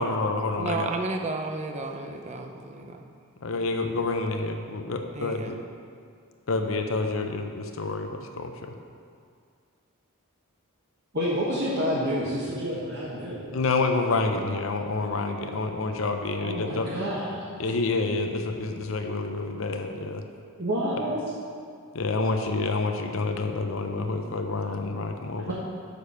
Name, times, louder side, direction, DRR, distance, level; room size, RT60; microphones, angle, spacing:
voice 1, 0.0-0.9 3.4-5.6 6.5-8.7 13.5-16.9 17.6-20.2 21.9-25.5, left 3 dB, 65° left, 5 dB, 0.7 m, -28 dB
voice 2, 0.6-3.0 5.1-5.5, right 3 dB, 30° right, 4 dB, 0.5 m, -33 dB
voice 3, 11.1-13.5 16.3-17.4 20.6-21.2 25.5-25.6, equal, 50° right, -8 dB, 1.2 m, -28 dB
6.8 x 6.6 x 5.6 m, 2.2 s
head